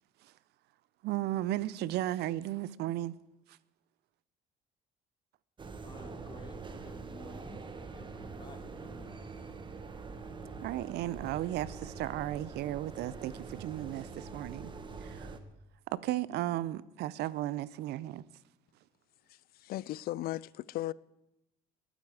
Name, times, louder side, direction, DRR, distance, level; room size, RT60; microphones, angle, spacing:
voice 1, 1.0-3.1 3.5-3.6 10.6-14.7 15.0-15.4 15.9-18.2, right 14 dB, 80° right, 0.6 m, -35 dB
sound 1, 5.6-15.4, right 4 dB, 30° right, 1.2 m, -44 dB
voice 2, 5.8-9.3, left 3 dB, 25° left, 2.0 m, -53 dB
voice 3, 19.3-20.9, left 15 dB, 65° left, 0.4 m, -37 dB
19.0 x 9.3 x 4.9 m
cardioid pair, 110°, 17 cm